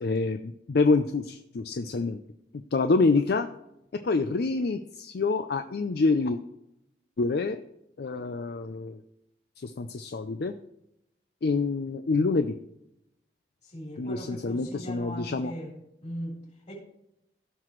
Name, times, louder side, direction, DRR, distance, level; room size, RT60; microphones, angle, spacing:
voice 1, 0.0-2.2 2.5-3.5 3.9-6.4 7.2-7.6 8.0-9.0 9.6-10.6 11.4-12.6 14.0-15.5, left 3 dB, 60° left, 9 dB, 0.5 m, -26 dB
voice 2, 13.6-15.8 16.0-16.7, equal, 40° left, -2 dB, 3.5 m, -39 dB
15.5 x 5.9 x 3.1 m, 0.83 s
head